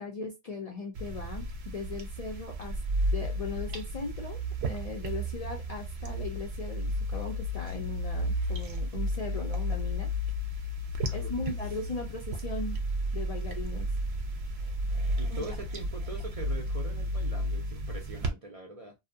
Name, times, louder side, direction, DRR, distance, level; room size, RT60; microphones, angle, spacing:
voice 1, 0.0-2.8 3.1-4.4 4.7-10.1 11.1-12.8 13.1-13.9 15.3-15.5, left 4 dB, 55° left, 0.4 m, -38 dB
sound 1, 1.0-18.3, equal, 85° right, 0.8 m, -33 dB
voice 2, 15.2-18.9, right 2 dB, 50° right, 0.4 m, -42 dB
2.6 x 2.0 x 2.6 m
omnidirectional pair, 1.1 m